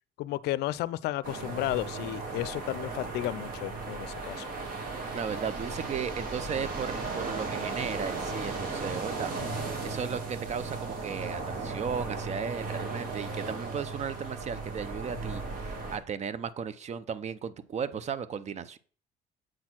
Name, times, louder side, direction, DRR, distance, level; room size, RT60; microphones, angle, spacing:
voice 1, 0.2-4.5 9.4-9.7, left 16 dB, 75° left, 0.4 m, -33 dB
sound 1, 1.2-16.0, right 3 dB, 60° right, 2.4 m, -36 dB
voice 2, 5.1-9.3 9.8-18.8, right 7 dB, 40° right, 0.6 m, -35 dB
7.6 x 4.3 x 5.9 m
cardioid pair, 110°, 17 cm